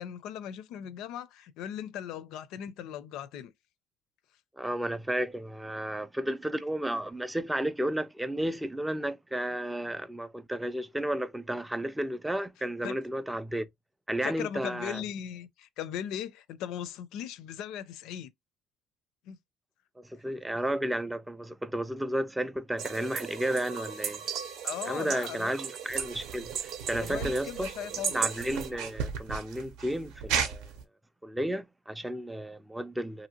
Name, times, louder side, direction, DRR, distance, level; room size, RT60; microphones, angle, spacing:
voice 1, 0.0-3.5 12.8-13.0 14.2-18.3 19.3-19.4 24.6-25.5 27.0-28.2, left 10 dB, 70° left, 0.4 m, -38 dB
voice 2, 4.5-13.7 14.1-15.0 20.0-24.2 24.9-27.7 28.1-30.7 31.2-33.3, right 1 dB, 5° right, 0.3 m, -33 dB
sound 1, 22.8-28.7, right 7 dB, 55° right, 0.6 m, -36 dB
sound 2, 25.9-30.8, right 6 dB, 90° right, 0.7 m, -36 dB
2.7 x 2.7 x 2.8 m
cardioid pair, 135°, 0 cm